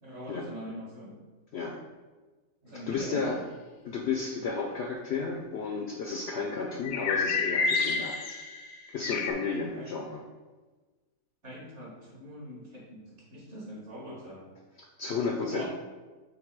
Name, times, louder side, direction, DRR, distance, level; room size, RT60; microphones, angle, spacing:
voice 1, 0.0-1.2 2.6-3.4 9.7-10.0 11.4-13.0 13.3-14.5 15.4-15.7, equal, 55° right, -4 dB, 2.0 m, -43 dB
voice 2, 2.9-3.4 3.8-8.2 8.9-10.2 14.8-15.6, left 4 dB, 60° left, 1 dB, 0.7 m, -32 dB
sound 1, 6.8-9.3, left 4 dB, 85° left, 1.2 m, -29 dB
6.6 x 3.3 x 4.7 m, 1.3 s
omnidirectional pair, 1.5 m